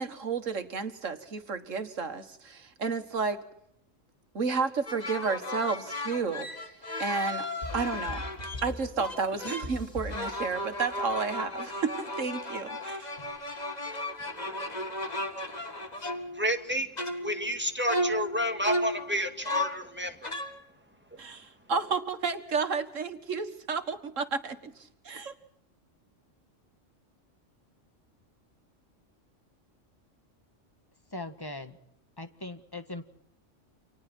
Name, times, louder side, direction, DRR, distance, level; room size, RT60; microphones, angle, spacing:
voice 1, 0.0-3.4 4.3-6.5 7.0-7.5 7.7-8.2 8.6-13.1 21.2-25.3, right 5 dB, 85° right, 2.1 m, -31 dB
sound 1, 4.9-8.7 9.0-9.8 10.1-16.6 17.0-17.6 17.8-19.9 20.2-20.6, left 1 dB, 35° left, 2.0 m, -35 dB
sound 2, 7.6-11.2, left 1 dB, 55° left, 5.4 m, -41 dB
voice 2, 16.3-16.9 17.2-20.3, equal, 10° right, 2.1 m, -30 dB
voice 3, 31.1-31.8 32.2-33.0, left 2 dB, 20° left, 1.6 m, -39 dB
29.5 x 26.5 x 4.5 m
omnidirectional pair, 1.3 m